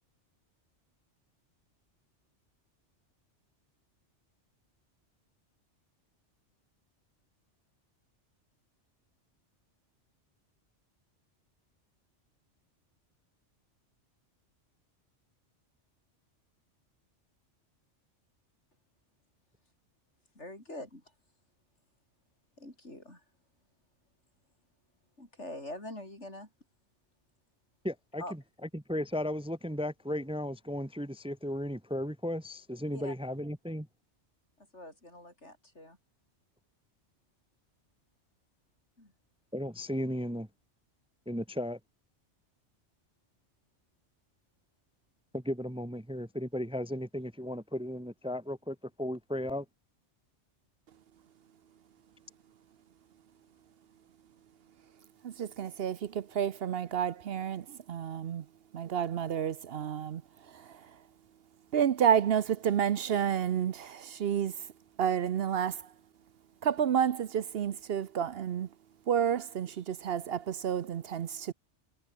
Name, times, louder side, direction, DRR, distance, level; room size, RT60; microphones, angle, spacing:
voice 1, 20.4-21.0 22.6-23.2 25.2-26.5 28.2-28.4 32.9-33.2 34.6-36.0 39.0-39.1, left 1 dB, 75° left, 8.5 m, -44 dB
voice 2, 27.8-28.2 28.7-33.9 39.5-40.5 41.3-41.8 45.3-49.6, equal, 5° right, 1.0 m, -35 dB
voice 3, 55.2-58.4 58.7-60.2 61.7-64.5 65.0-65.9 66.6-68.7 69.1-71.5, right 8 dB, 60° right, 0.9 m, -30 dB
omnidirectional pair, 1.2 m